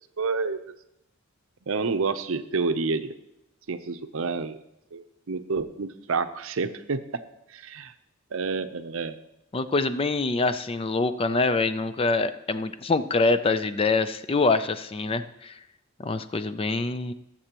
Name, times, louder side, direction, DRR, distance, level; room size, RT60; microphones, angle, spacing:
voice 1, 0.2-0.6 1.7-3.1 3.7-4.6 4.9-7.0 7.5-7.9 8.3-9.2, right 4 dB, 65° right, 10 dB, 0.6 m, -29 dB
voice 2, 9.5-15.6 16.0-17.1, left 3 dB, 25° left, 12 dB, 0.4 m, -25 dB
19.5 x 7.4 x 3.0 m, 0.86 s
head